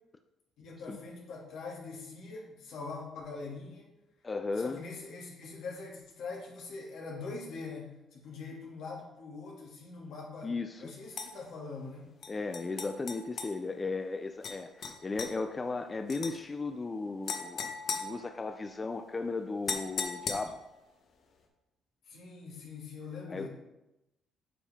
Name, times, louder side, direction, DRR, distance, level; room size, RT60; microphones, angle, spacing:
voice 1, 0.6-3.9 4.6-10.5 10.8-12.1 22.1-23.5, left 4 dB, 80° left, -3 dB, 2.2 m, -43 dB
voice 2, 4.2-4.8 10.4-10.9 12.3-20.6 23.3-23.5, left 3 dB, 25° left, 7 dB, 0.4 m, -36 dB
sound 1, 11.1-11.3 12.2-13.5 14.4-14.6 14.8-15.3 16.1-16.3 17.3-18.8 19.7-20.7, left 5 dB, 60° left, 1.1 m, -37 dB
8.5 x 5.4 x 3.6 m, 0.93 s
cardioid pair, 105°, 0 cm